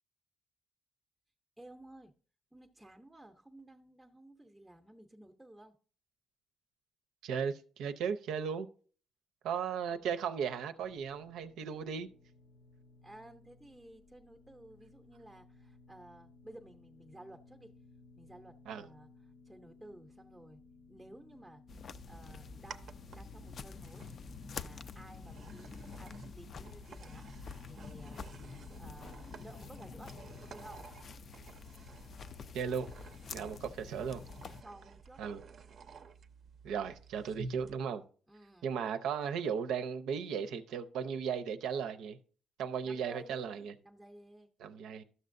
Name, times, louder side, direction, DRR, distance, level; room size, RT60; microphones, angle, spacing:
voice 1, 1.6-2.1 2.5-5.8 9.5-10.0 13.0-17.7 18.2-20.6 20.9-21.6 22.1-24.1 24.5-27.3 27.7-28.4 28.8-30.1 30.4-30.9 33.5-34.1 34.6-35.2 38.3-38.7 42.8-44.5, right 1 dB, 5° right, 0.6 m, -55 dB
voice 2, 7.2-8.7 9.4-12.1 18.7-18.9 32.5-32.9 33.3-34.2 35.2-35.4 36.6-38.0 38.6-42.2 42.6-43.7 44.6-45.0, right 7 dB, 90° right, 0.6 m, -36 dB
sound 1, 10.8-29.6, left 3 dB, 85° left, 1.0 m, -61 dB
sound 2, 21.7-34.6, left 6 dB, 40° left, 0.3 m, -48 dB
sound 3, 21.7-37.7, right 4 dB, 45° right, 0.5 m, -52 dB
12.5 x 6.6 x 2.6 m
cardioid pair, 150°, 0 cm